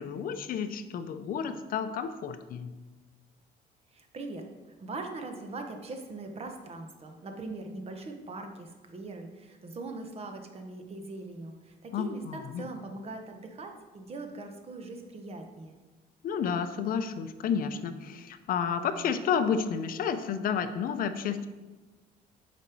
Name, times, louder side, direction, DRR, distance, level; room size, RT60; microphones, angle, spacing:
voice 1, 0.0-2.7 11.9-12.7 16.2-21.5, left 7 dB, 55° left, 10 dB, 0.6 m, -31 dB
voice 2, 3.9-4.4 4.8-15.8, right 2 dB, 35° right, 4 dB, 1.1 m, -41 dB
7.0 x 5.2 x 4.6 m, 1.2 s
cardioid pair, 110°, 17 cm